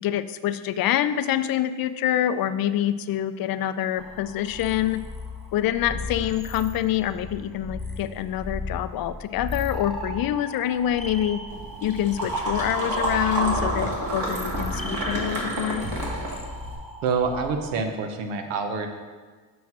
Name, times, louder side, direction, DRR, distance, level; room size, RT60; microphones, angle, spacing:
voice 1, 0.0-5.0 5.5-11.4 11.8-15.8, left 11 dB, 50° left, 13 dB, 0.4 m, -26 dB
sound 1, 4.0-17.8, left 2 dB, ahead, 0.7 m, -36 dB
sound 2, 11.5-16.8, right 1 dB, 50° right, 2.0 m, -29 dB
voice 2, 17.0-18.9, right 5 dB, 85° right, 5 dB, 0.9 m, -26 dB
7.2 x 3.1 x 5.9 m, 1.4 s
supercardioid pair, 65°, 45 cm